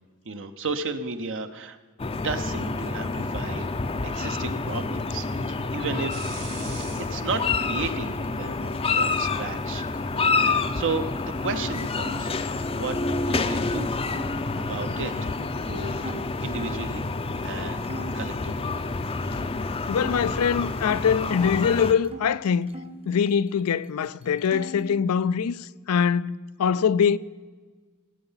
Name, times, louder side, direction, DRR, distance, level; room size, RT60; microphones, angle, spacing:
voice 1, 0.2-1.8 2.0-3.7 4.0-6.3 7.1-9.9 10.2-11.1 11.4-12.3 12.7-13.9 14.6-15.3 15.6-17.1 17.4-18.7, right 4 dB, 60° right, 0.8 m, -33 dB
sound 1, 2.0-21.9, left 3 dB, 25° left, 0.5 m, -28 dB
sound 2, 6.1-12.3, right 4 dB, 75° right, 4.4 m, -47 dB
sound 3, 6.5-12.2 12.5-13.5 14.1-17.0 17.4-17.6 17.8-20.3 20.6-22.3 22.7-23.8 24.0-24.9, equal, 25° right, 0.9 m, -45 dB
voice 2, 19.9-22.7 23.1-27.2, left 7 dB, 75° left, 0.4 m, -23 dB
18.5 x 7.9 x 5.7 m
head